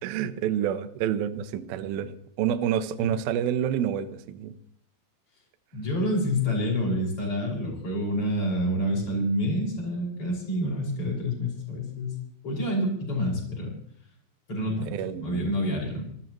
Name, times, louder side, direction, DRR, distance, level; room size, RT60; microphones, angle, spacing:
voice 1, 0.0-2.1 2.4-4.6 14.9-15.4, right 9 dB, 75° right, 11 dB, 2.4 m, -28 dB
voice 2, 5.7-12.2 12.4-13.7 14.5-16.0, equal, 30° left, -2 dB, 6.6 m, -28 dB
28.0 x 13.5 x 3.1 m, 0.69 s
omnidirectional pair, 5.3 m